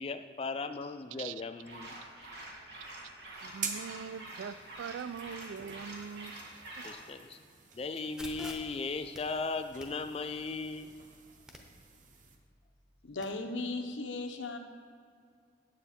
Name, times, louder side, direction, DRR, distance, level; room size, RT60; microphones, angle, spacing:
voice 1, 0.0-1.9 6.8-7.4 7.7-10.9, left 4 dB, 30° left, 8 dB, 0.3 m, -37 dB
sound 1, 1.6-7.0, right 1 dB, 60° right, 2.6 m, -47 dB
sound 2, 3.4-12.4, right 6 dB, 40° right, 0.8 m, -47 dB
voice 2, 3.4-6.9, right 7 dB, 85° right, 16 dB, 0.3 m, -43 dB
sound 3, 8.2-13.2, equal, 5° right, 0.7 m, -52 dB
voice 3, 13.0-14.6, left 3 dB, 80° left, 4 dB, 0.9 m, -37 dB
8.9 x 7.9 x 4.3 m, 2.2 s
head